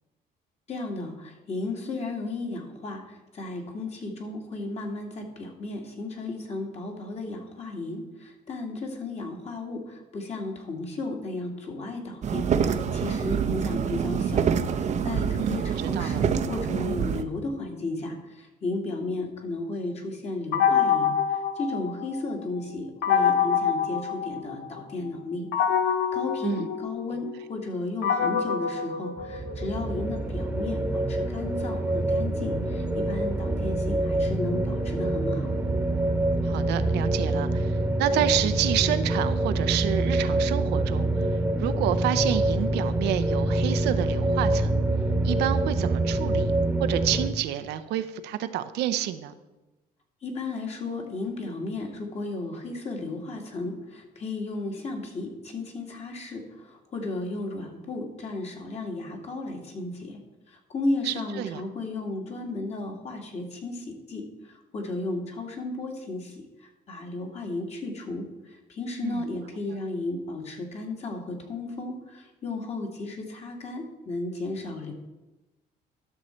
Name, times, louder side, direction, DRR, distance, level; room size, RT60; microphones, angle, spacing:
voice 1, 0.7-14.5 14.8-25.5 26.1-35.5 50.2-60.2 60.5-74.9, left 2 dB, 40° left, 2 dB, 2.0 m, -34 dB
sound 1, 12.2-17.2, right 7 dB, 45° right, 0.7 m, -26 dB
voice 2, 15.4-15.7 16.0-16.2 26.4-26.7 36.4-41.1 41.6-44.8 45.2-46.5 46.8-49.3 61.0-61.6 69.0-69.2, right 12 dB, 80° right, 10 dB, 0.7 m, -29 dB
sound 2, 20.5-22.3 23.0-24.8 25.5-29.8, left 7 dB, 85° left, 0.9 m, -26 dB
sound 3, 29.2-47.3, right 2 dB, 10° right, 1.2 m, -26 dB
12.5 x 6.4 x 4.4 m, 1.0 s
cardioid pair, 110°, 17 cm